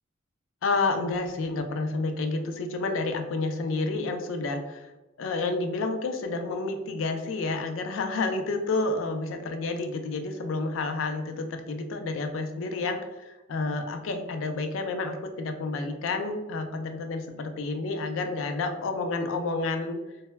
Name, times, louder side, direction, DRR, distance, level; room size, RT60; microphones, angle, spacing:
voice 1, 0.6-4.9 5.2-20.0, left 3 dB, 85° left, 6 dB, 0.4 m, -30 dB
2.1 x 2.0 x 3.2 m, 1.1 s
head